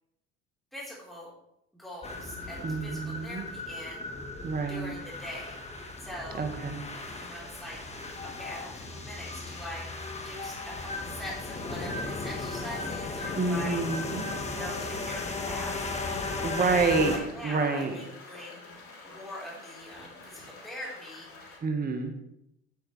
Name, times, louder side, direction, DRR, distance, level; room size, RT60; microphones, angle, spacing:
voice 1, 0.7-1.3 1.8-4.1 4.7-5.6 6.0-6.5 7.2-7.8 8.2-9.9 10.2-13.8 14.5-15.8 16.6-18.6 19.0-21.3, left 1 dB, ahead, -6 dB, 3.9 m, -42 dB
sound 1, 2.0-17.2, left 3 dB, 20° left, 1.6 m, -36 dB
voice 2, 2.6-3.5 4.4-4.9 6.3-6.8 13.3-14.3 16.4-18.0 21.6-22.1, right 4 dB, 25° right, 5 dB, 1.5 m, -28 dB
sound 2, 16.6-21.6, left 3 dB, 40° left, 3.3 m, -49 dB
9.4 x 8.6 x 3.3 m, 0.82 s
hypercardioid pair, 75°, 34 cm